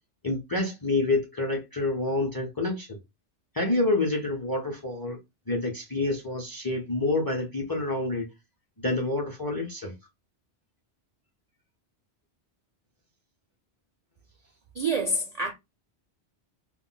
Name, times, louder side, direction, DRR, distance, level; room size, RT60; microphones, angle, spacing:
voice 1, 0.2-3.0 3.5-5.2 5.5-8.3 8.8-9.9, left 2 dB, 30° left, 0.4 m, -28 dB
voice 2, 14.8-15.5, right 2 dB, 60° right, 0.4 m, -27 dB
2.3 x 2.1 x 3.6 m
omnidirectional pair, 1.1 m